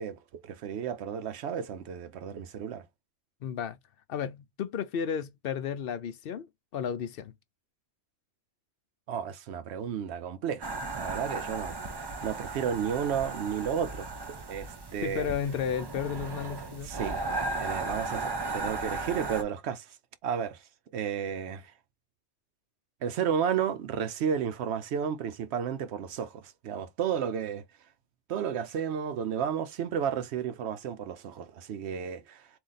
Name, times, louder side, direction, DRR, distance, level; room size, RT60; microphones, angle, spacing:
voice 1, 0.0-2.8 9.1-15.3 16.8-17.2 17.6-20.0 20.2-20.6 20.9-21.7 23.0-27.6 28.3-32.5, right 8 dB, 80° right, 0.9 m, -32 dB
voice 2, 3.4-3.8 4.1-6.5 6.7-7.3 15.0-17.0, left 8 dB, 65° left, 0.8 m, -33 dB
sound 1, 10.6-19.4, right 3 dB, 30° right, 0.5 m, -36 dB
3.8 x 2.6 x 3.9 m
omnidirectional pair, 1.1 m